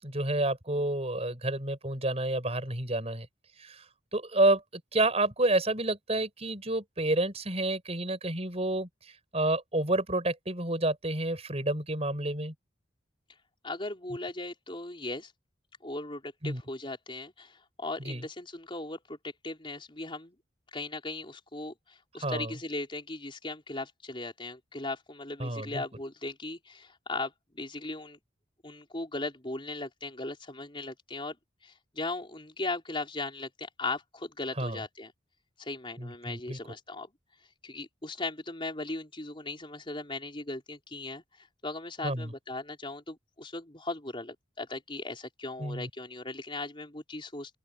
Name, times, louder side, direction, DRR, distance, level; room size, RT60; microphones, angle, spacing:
voice 1, 0.0-3.3 3.6-12.5 16.4-16.6 18.0-18.2 22.2-22.5 25.4-25.8 34.6-34.8 36.0-36.6 42.0-42.3 45.6-45.9, right 2 dB, 35° right, 5.9 m, -29 dB
voice 2, 13.6-15.3 15.8-19.2 19.4-20.4 20.7-28.2 28.6-31.4 31.6-35.1 35.6-37.1 37.6-41.2 41.6-47.6, left 2 dB, 25° left, 4.1 m, -38 dB
open air
head